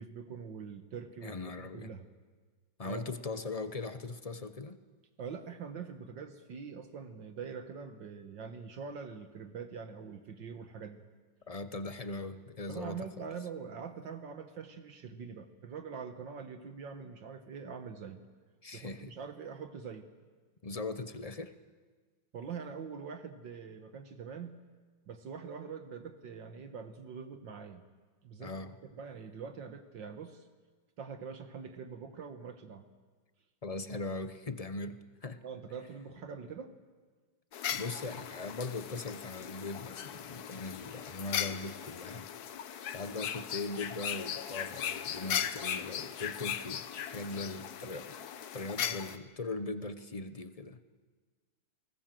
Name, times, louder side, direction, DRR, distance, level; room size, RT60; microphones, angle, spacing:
voice 1, 0.0-2.1 2.8-3.1 5.2-11.0 12.7-18.2 18.7-20.1 22.3-24.6 25.1-27.8 28.2-28.5 28.8-30.5 31.0-32.8 35.4-36.7 47.3-47.5 48.8-49.0, right 6 dB, 70° right, 7 dB, 2.0 m, -44 dB
voice 2, 1.2-1.9 2.8-4.8 11.5-13.0 18.6-19.1 20.6-21.5 28.4-28.7 33.6-35.4 37.7-42.3 42.9-48.2 48.5-50.8, left 3 dB, 40° left, 11 dB, 0.5 m, -40 dB
sound 1, 37.5-49.2, left 9 dB, 60° left, 1.3 m, -38 dB
29.0 x 20.0 x 7.6 m, 1.4 s
omnidirectional pair, 2.1 m